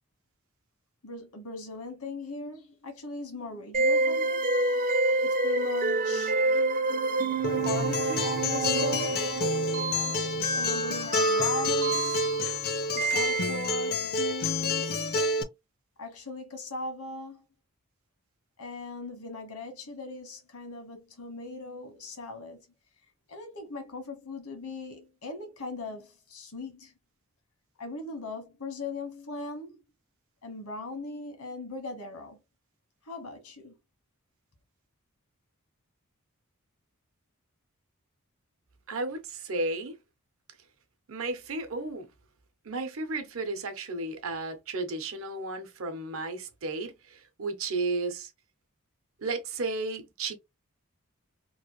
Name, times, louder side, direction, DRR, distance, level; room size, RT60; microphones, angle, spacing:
voice 1, 1.0-4.5 5.2-6.4 7.2-9.4 10.5-12.3 12.9-15.1 16.0-17.4 18.6-22.7 23.3-26.9 27.8-29.8 30.4-32.4 33.0-33.7, left 3 dB, 85° left, 1.2 m, -39 dB
sound 1, 3.7-13.9, right 2 dB, 40° right, 0.4 m, -28 dB
Acoustic guitar, 7.4-15.4, left 2 dB, 45° left, 0.5 m, -29 dB
voice 2, 38.9-39.9 41.1-42.0 42.6-48.3 49.2-50.3, right 3 dB, 65° right, 0.8 m, -33 dB
3.0 x 2.5 x 3.0 m
head